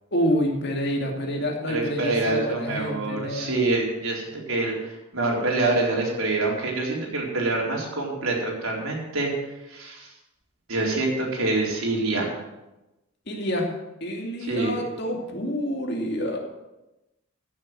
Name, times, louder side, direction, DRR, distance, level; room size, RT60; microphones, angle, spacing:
voice 1, 0.1-3.5 13.3-13.7 14.0-16.4, equal, 50° left, 1 dB, 2.6 m, -27 dB
voice 2, 1.7-9.3 9.7-10.1 10.7-12.3 14.5-14.9, right 2 dB, 80° right, -2 dB, 4.3 m, -26 dB
15.0 x 7.4 x 7.9 m, 0.99 s
head